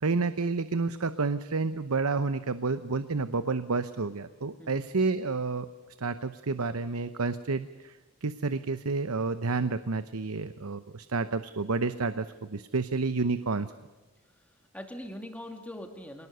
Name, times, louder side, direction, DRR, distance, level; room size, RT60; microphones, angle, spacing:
voice 1, 0.0-5.7 6.0-13.7, right 4 dB, 80° right, 12 dB, 0.9 m, -30 dB
voice 2, 14.4-16.3, left 1 dB, 5° left, 4 dB, 2.6 m, -42 dB
26.0 x 19.0 x 6.8 m, 1.2 s
head